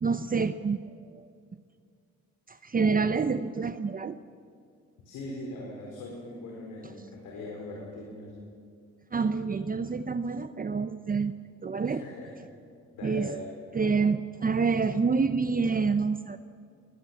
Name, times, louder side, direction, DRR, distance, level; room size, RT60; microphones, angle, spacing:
voice 1, 0.0-0.8 1.1-1.3 2.5-4.2 9.1-11.3 11.6-12.0 13.0-13.3 13.7-16.4, right 5 dB, 30° right, 11 dB, 0.8 m, -27 dB
voice 2, 5.0-8.4 11.8-12.3 12.9-13.5, left 1 dB, 85° left, -2 dB, 4.5 m, -40 dB
21.5 x 19.5 x 7.3 m, 2.2 s
cardioid pair, 90°, 30 cm